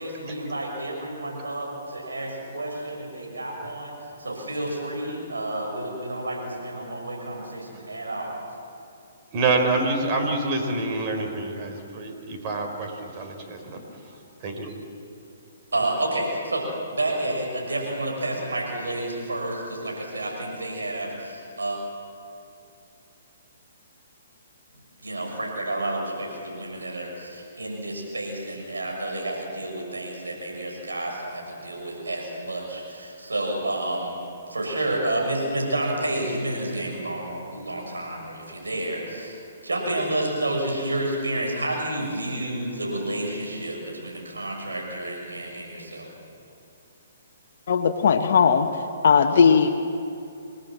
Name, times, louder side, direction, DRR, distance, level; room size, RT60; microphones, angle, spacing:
voice 1, 0.0-8.4 15.7-21.8 25.0-34.2 34.5-46.1, right 1 dB, 85° right, 0 dB, 6.6 m, -30 dB
voice 2, 9.3-13.8 14.4-14.7, right 3 dB, 35° right, 3 dB, 4.4 m, -26 dB
voice 3, 47.7-48.7 49.0-49.7, left 6 dB, 60° left, 6 dB, 1.3 m, -18 dB
28.0 x 20.0 x 7.6 m, 2.7 s
hypercardioid pair, 130°, 0 cm